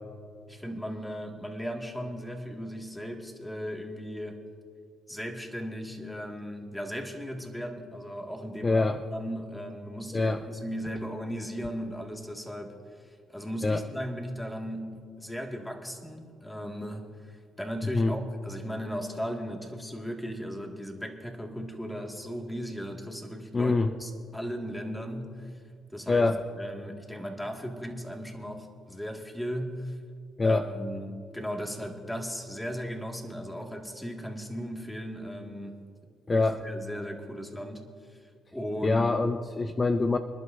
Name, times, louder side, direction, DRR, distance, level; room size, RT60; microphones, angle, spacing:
voice 1, 0.5-4.4 5.1-12.7 13.0-25.5 25.9-26.3 26.6-30.0 30.4-35.8 36.3-38.2 38.5-39.1, equal, 5° left, 2 dB, 1.9 m, -37 dB
voice 2, 8.6-9.0 10.1-10.4 13.6-13.8 17.9-18.1 23.5-23.9 26.1-26.4 30.4-30.6 36.3-36.6 38.8-40.2, left 3 dB, 25° left, 8 dB, 0.5 m, -24 dB
26.0 x 11.5 x 2.6 m, 2.2 s
cardioid pair, 90°, 0 cm